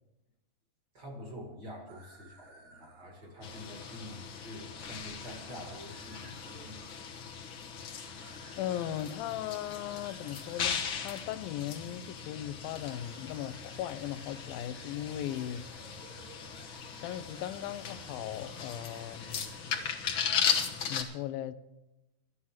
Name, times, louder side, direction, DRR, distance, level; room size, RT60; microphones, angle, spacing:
voice 1, 0.9-7.4, equal, 35° right, 1.8 m, -47 dB
sound 1, 1.9-7.0 7.8-9.2 9.6-10.9 12.6-20.2 20.5-20.7, right 4 dB, 80° right, 4.7 m, -57 dB
sound 2, 3.4-21.0, left 7 dB, 70° left, 1.2 m, -38 dB
voice 2, 8.6-15.7 17.0-19.5 20.9-21.6, left 11 dB, 90° left, 2.5 m, -38 dB
12.0 x 9.9 x 7.2 m
omnidirectional pair, 4.1 m